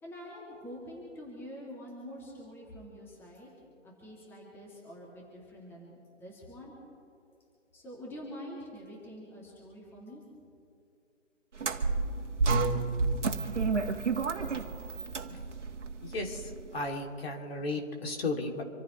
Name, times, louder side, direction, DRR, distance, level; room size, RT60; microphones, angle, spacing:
voice 1, 0.0-3.5 3.8-6.7 7.7-10.2, equal, 5° left, -4 dB, 2.4 m, -46 dB
sound 1, 11.6-16.8, right 4 dB, 65° right, 1.8 m, -30 dB
voice 2, 16.0-18.6, left 2 dB, 50° left, 1 dB, 2.9 m, -35 dB
27.0 x 15.0 x 3.2 m, 2.5 s
figure-of-eight pair, 150°, 37 cm